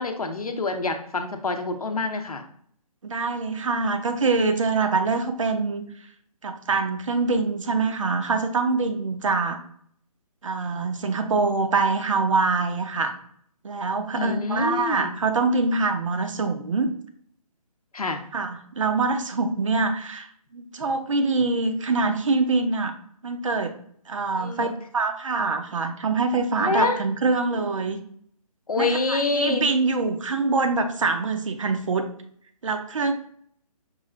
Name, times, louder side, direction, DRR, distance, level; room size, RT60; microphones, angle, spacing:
voice 1, 0.0-2.4 14.1-15.1 17.9-18.2 24.4-24.7 26.6-27.0 28.7-29.6, left 3 dB, 70° left, 6 dB, 0.7 m, -26 dB
voice 2, 3.0-5.9 6.4-9.6 10.4-13.1 13.6-16.9 18.3-22.9 23.2-23.8 24.1-24.7 24.9-28.0 28.8-32.1 32.6-33.1, right 3 dB, 55° right, 7 dB, 0.6 m, -24 dB
5.2 x 2.6 x 3.2 m, 0.63 s
figure-of-eight pair, 140°, 20 cm